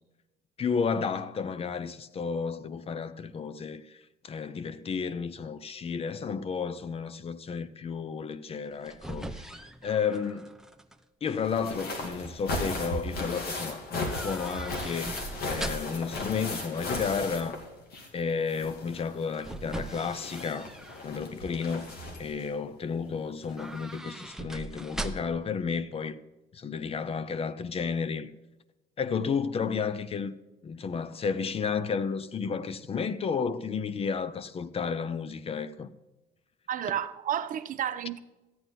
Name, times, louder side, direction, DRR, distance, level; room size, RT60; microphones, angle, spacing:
voice 1, 0.6-4.0 4.2-10.5 11.2-17.6 18.1-20.7 21.0-21.9 22.2-26.2 26.5-28.3 29.0-30.4 30.6-35.9, left 6 dB, 35° left, 0.7 m, -32 dB
sound 1, 8.6-10.9 11.3-11.8 14.0-16.1 18.9-21.1 21.5-22.0 23.4-25.5 25.8-25.9, right 2 dB, 5° right, 0.7 m, -40 dB
sound 2, 11.4-18.2 18.5-22.4 23.5-23.6 23.9-24.0, left 2 dB, 70° left, 2.5 m, -36 dB
voice 2, 36.7-38.2, right 10 dB, 50° right, 0.8 m, -31 dB
14.0 x 9.0 x 4.2 m
cardioid pair, 110°, 17 cm